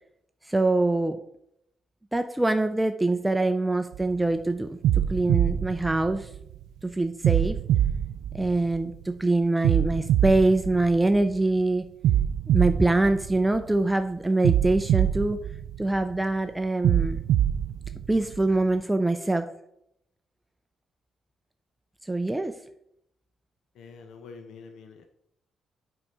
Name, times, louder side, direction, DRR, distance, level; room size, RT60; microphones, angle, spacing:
voice 1, 0.5-1.2 2.1-6.3 6.8-7.6 8.3-11.9 12.5-15.4 15.8-17.2 18.1-19.5 22.0-22.6, right 2 dB, 10° right, 8 dB, 0.5 m, -24 dB
sound 1, 3.9-4.2 4.8-6.6 7.2-9.0 9.6-11.4 12.0-13.8 14.4-16.2 16.8-18.6, right 10 dB, 80° right, 0.4 m, -25 dB
voice 2, 23.7-25.1, left 5 dB, 75° left, 6 dB, 0.8 m, -46 dB
8.5 x 4.7 x 5.4 m, 0.77 s
cardioid pair, 90°, 0 cm